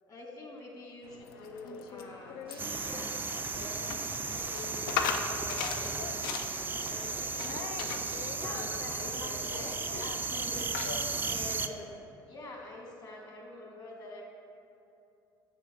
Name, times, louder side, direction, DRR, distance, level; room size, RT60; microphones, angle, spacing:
voice 1, 0.1-3.8 4.3-8.0 8.4-12.0 12.2-14.2, left 2 dB, 35° left, -1 dB, 1.5 m, -46 dB
sound 1, 1.0-12.0, left 6 dB, 70° left, 0.4 m, -40 dB
sound 2, 2.5-7.5, right 4 dB, 90° right, 0.4 m, -53 dB
sound 3, 2.6-11.7, right 4 dB, 15° right, 0.3 m, -35 dB
6.8 x 4.3 x 4.2 m, 2.7 s
figure-of-eight pair, 55°, 12 cm